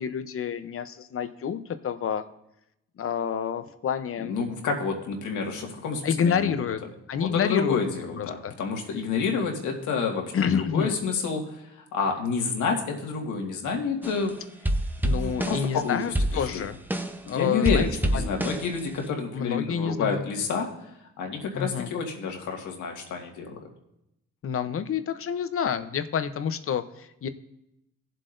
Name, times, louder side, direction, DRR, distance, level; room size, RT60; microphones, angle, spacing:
voice 1, 0.0-2.2 3.0-4.3 6.0-6.8 7.1-7.8 8.2-8.5 10.3-10.9 15.0-16.8 17.3-17.9 18.1-18.3 19.3-20.2 21.5-21.9 24.4-27.3, left 7 dB, 45° left, 10 dB, 0.7 m, -28 dB
voice 2, 4.2-6.5 7.1-11.5 11.8-14.3 15.1-16.6 17.3-20.7 21.2-23.7, left 5 dB, 80° left, 2 dB, 1.8 m, -29 dB
sound 1, 14.0-14.3 14.6-17.3 17.6-19.0, right 1 dB, 5° right, 0.7 m, -28 dB
17.5 x 7.6 x 2.6 m, 0.84 s
cardioid pair, 90°, 30 cm